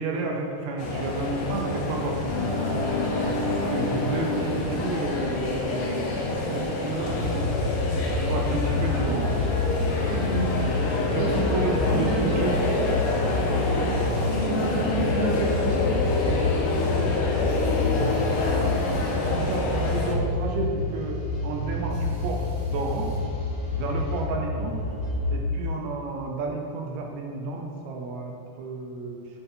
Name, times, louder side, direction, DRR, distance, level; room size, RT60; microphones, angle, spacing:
voice 1, 0.0-2.3 3.2-3.4 3.7-7.6 8.1-9.6 11.1-12.8 13.8-13.9 17.9-18.5 19.0-23.1 23.7-24.8 25.3-29.3, right 3 dB, 75° right, 1 dB, 1.8 m, -31 dB
sound 1, 0.8-20.1, left 2 dB, 75° left, 1.3 m, -27 dB
sound 2, 2.3-6.1, left 2 dB, 15° left, 0.6 m, -31 dB
sound 3, 7.0-25.4, left 3 dB, 55° left, 1.1 m, -28 dB
voice 2, 10.1-10.8 11.2-11.3 11.8-12.4 12.7-12.9 14.4-15.9, equal, 20° right, -8 dB, 1.3 m, -29 dB
8.7 x 4.3 x 4.2 m, 2.3 s
omnidirectional pair, 3.6 m